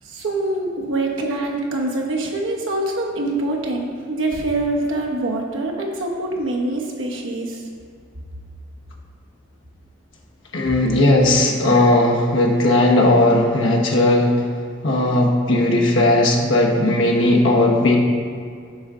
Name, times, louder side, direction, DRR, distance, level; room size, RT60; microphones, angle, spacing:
voice 1, 0.0-7.6, right 2 dB, 85° right, 0 dB, 1.1 m, -24 dB
voice 2, 10.5-14.3 14.8-18.0, left 1 dB, 80° left, -1 dB, 1.2 m, -16 dB
8.5 x 5.6 x 3.7 m, 2.2 s
head